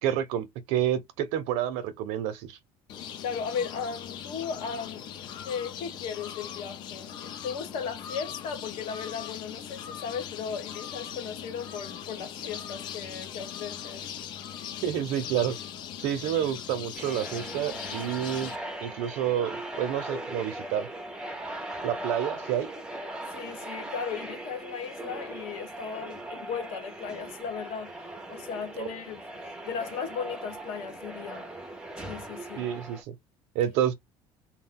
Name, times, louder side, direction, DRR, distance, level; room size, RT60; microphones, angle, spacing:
voice 1, 0.0-2.6 14.8-15.6 16.0-18.5 18.8-20.9 21.8-22.7 28.8-28.9 32.6-33.1 33.5-33.9, right 10 dB, 75° right, 0.6 m, -29 dB
sound 1, 2.9-18.6, left 9 dB, 45° left, 0.5 m, -40 dB
voice 2, 3.2-5.1 5.4-14.0 23.3-28.0 28.3-31.5 32.0-32.7, left 6 dB, 65° left, 1.1 m, -36 dB
sound 2, 16.9-33.0, right 1 dB, 10° right, 0.5 m, -39 dB
2.4 x 2.2 x 3.5 m
cardioid pair, 175°, 11 cm